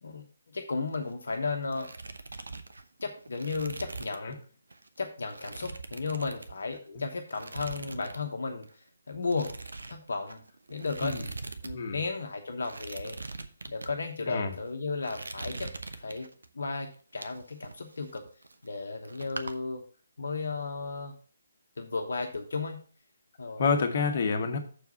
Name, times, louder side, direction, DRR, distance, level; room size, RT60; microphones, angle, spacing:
voice 1, 0.0-1.9 3.0-4.4 5.0-8.7 9.1-9.6 9.9-10.4 10.7-11.2 11.6-13.2 13.7-15.7 16.0-16.3 16.5-18.2 18.6-19.8 20.2-21.1 21.8-22.8 23.4-23.7, left 4 dB, 60° left, 4 dB, 1.1 m, -34 dB
sound 1, 0.8-1.4 1.6-4.3 4.7-4.9 5.3-6.9 7.3-8.2 8.5-8.7 9.3-11.7 12.0-12.1 12.6-13.9 14.5-14.7 15.0-16.5 16.9-18.8 19.1-19.5, right 3 dB, 70° right, 0.9 m, -42 dB
voice 2, 23.6-24.6, left 5 dB, 40° left, 6 dB, 1.3 m, -28 dB
6.9 x 4.7 x 6.6 m, 0.42 s
figure-of-eight pair, 140°, 0 cm